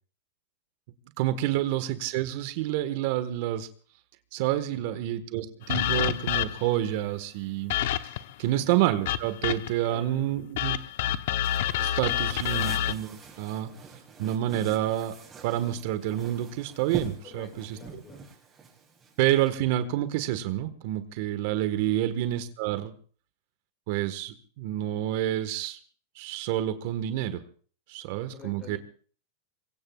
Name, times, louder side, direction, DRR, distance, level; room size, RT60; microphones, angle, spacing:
voice 1, 1.2-3.7 4.3-7.8 8.4-10.8 11.8-13.7 14.2-15.1 15.4-17.8 19.2-22.9 23.9-25.8 26.1-27.4 27.9-28.8, right 13 dB, 60° right, 11 dB, 1.5 m, -28 dB
voice 2, 4.7-5.0 8.5-8.7 9.8-10.3 17.2-18.2 21.9-22.2 28.3-28.8, left 5 dB, 30° left, 3 dB, 7.7 m, -48 dB
sound 1, 5.7-6.8 7.7-8.3 9.1-9.9 10.6-12.9, left 12 dB, 65° left, 1.0 m, -28 dB
sound 2, 11.4-19.5, right 5 dB, 20° right, 6.6 m, -44 dB
26.0 x 22.5 x 2.4 m, 0.43 s
hypercardioid pair, 110°, 0 cm